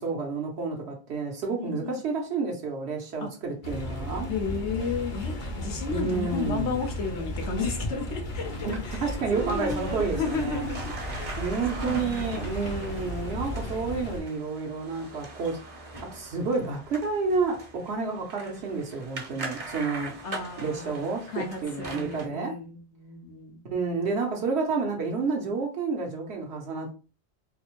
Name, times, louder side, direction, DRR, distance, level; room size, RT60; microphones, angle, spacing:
voice 1, 0.0-4.3 5.9-6.8 8.7-10.7 11.4-15.6 16.1-20.1 20.6-22.6 23.7-26.9, right 4 dB, 70° right, 1.0 m, -30 dB
voice 2, 1.6-2.0 3.2-3.3 4.3-8.5 8.8-9.1 9.3-11.4 11.7-13.0 20.2-21.0 21.3-23.6, left 4 dB, 80° left, 1.1 m, -33 dB
sound 1, 3.6-14.2, equal, 50° left, 0.8 m, -35 dB
sound 2, 9.3-22.3, right 2 dB, 40° right, 0.7 m, -41 dB
4.1 x 2.0 x 2.9 m
omnidirectional pair, 1.1 m